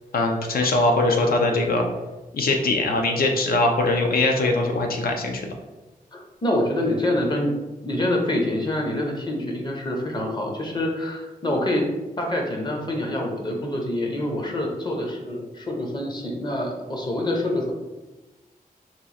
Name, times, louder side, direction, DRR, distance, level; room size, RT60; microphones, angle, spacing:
voice 1, 0.1-1.9 2.3-5.4, left 2 dB, 80° left, 2 dB, 0.6 m, -21 dB
voice 2, 6.1-7.5 7.8-11.8 12.2-17.7, left 1 dB, 30° left, 1 dB, 0.6 m, -26 dB
3.0 x 2.4 x 4.0 m, 1.1 s
wide cardioid pair, 145°, 15 cm